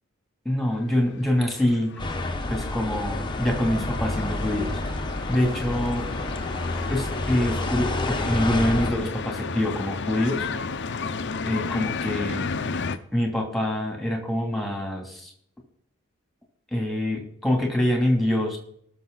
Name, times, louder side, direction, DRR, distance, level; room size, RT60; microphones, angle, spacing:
voice 1, 0.4-1.9 2.5-4.8 5.3-6.1 6.9-10.5 11.4-12.5 13.1-15.3 16.7-18.6, left 1 dB, ahead, 1 dB, 2.9 m, -25 dB
sound 1, 0.9-13.0, left 4 dB, 55° left, 0.7 m, -33 dB
sound 2, 2.0-8.9, left 2 dB, 25° left, 1.1 m, -29 dB
19.0 x 6.9 x 4.1 m, 0.66 s
head